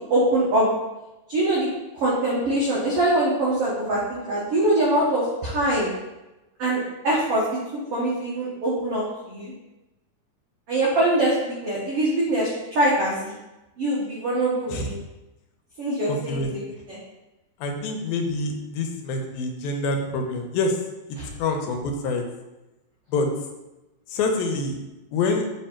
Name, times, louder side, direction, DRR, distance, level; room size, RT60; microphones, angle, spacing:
voice 1, 0.1-0.7 1.3-1.7 1.9-5.9 6.6-7.4 7.9-9.5 10.7-13.3 13.8-14.9 15.8-17.0 21.2-21.3, right 1 dB, 70° right, -6 dB, 1.4 m, -23 dB
voice 2, 16.1-16.5 17.6-20.8 21.1-22.2 23.1-23.3 24.1-24.8 25.1-25.5, left 3 dB, 90° left, 3 dB, 2.6 m, -26 dB
7.0 x 3.4 x 4.3 m, 1.0 s
omnidirectional pair, 4.2 m